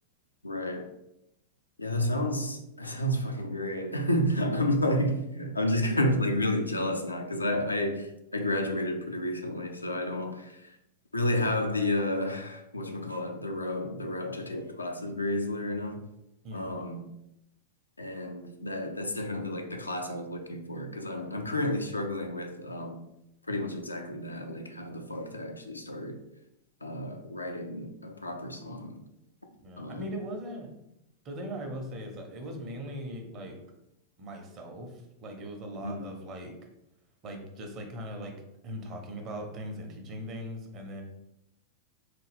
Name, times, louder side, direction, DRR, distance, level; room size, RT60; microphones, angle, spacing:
voice 1, 0.4-0.9 1.8-10.8 11.1-16.0 16.5-17.0 18.0-23.0 23.5-26.2 26.8-29.0 29.8-30.1 35.8-36.1, left 1 dB, 80° left, 0.4 m, -31 dB
voice 2, 16.4-16.8 29.6-30.7 31.2-33.6 34.2-36.6 37.2-38.3 38.6-41.0, equal, 35° right, 0.7 m, -39 dB
3.3 x 2.3 x 3.4 m
figure-of-eight pair, 90°, 0 cm